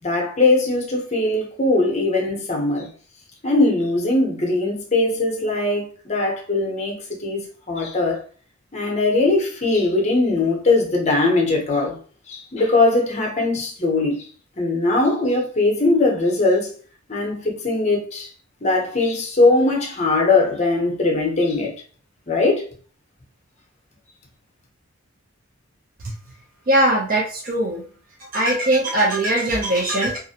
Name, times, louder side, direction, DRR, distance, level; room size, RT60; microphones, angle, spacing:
voice 1, 0.0-2.9 3.4-8.2 8.7-12.0 12.3-14.3 14.6-16.7 17.1-18.3 18.6-21.7 22.3-22.7, left 2 dB, 30° left, 0.6 m, -20 dB
voice 2, 26.7-27.8 28.2-30.2, right 1 dB, 40° right, 0.4 m, -20 dB
2.4 x 2.0 x 2.7 m
head